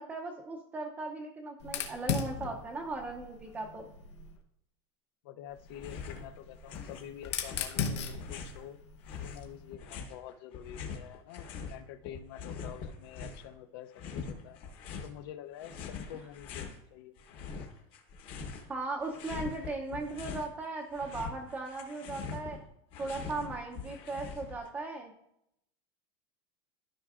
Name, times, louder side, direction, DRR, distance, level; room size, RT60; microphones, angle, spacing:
voice 1, 0.0-3.9 18.7-22.6 23.0-25.1, right 3 dB, 10° right, 1 dB, 0.6 m, -37 dB
Fire, 1.6-4.4 5.5-9.7, left 6 dB, 85° left, 1.1 m, -38 dB
voice 2, 5.2-8.8 9.2-14.6 15.0-17.1, left 10 dB, 55° left, 11 dB, 0.6 m, -47 dB
sound 1, 5.7-6.3 6.5-8.6 9.1-11.8 12.0-13.5 13.9-15.1 15.6-16.8 17.2-18.7 19.0-20.5 20.8-24.7, left 5 dB, 40° left, 1.0 m, -43 dB
13.0 x 5.7 x 2.4 m, 0.80 s
supercardioid pair, 165°, 14 cm